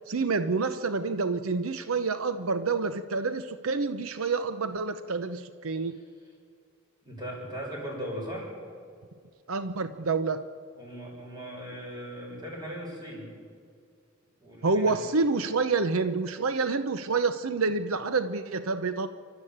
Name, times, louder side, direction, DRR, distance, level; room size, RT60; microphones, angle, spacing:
voice 1, 0.1-6.0 9.5-10.4 14.6-19.1, right 4 dB, 85° right, 10 dB, 0.8 m, -28 dB
voice 2, 7.0-8.5 9.9-10.0 10.8-13.3 14.4-15.0, equal, 20° right, -2 dB, 6.9 m, -38 dB
28.0 x 12.5 x 8.7 m, 2.2 s
head